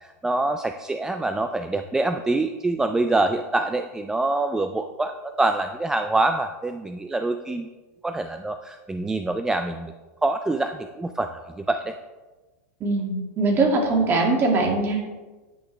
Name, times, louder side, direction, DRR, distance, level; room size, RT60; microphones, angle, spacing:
voice 1, 0.2-7.7 8.0-9.9 10.2-11.9, right 2 dB, 5° right, 7 dB, 0.3 m, -25 dB
voice 2, 12.8-15.1, right 3 dB, 25° right, 0 dB, 2.2 m, -21 dB
10.0 x 9.5 x 3.2 m, 1.2 s
supercardioid pair, 145°, 9 cm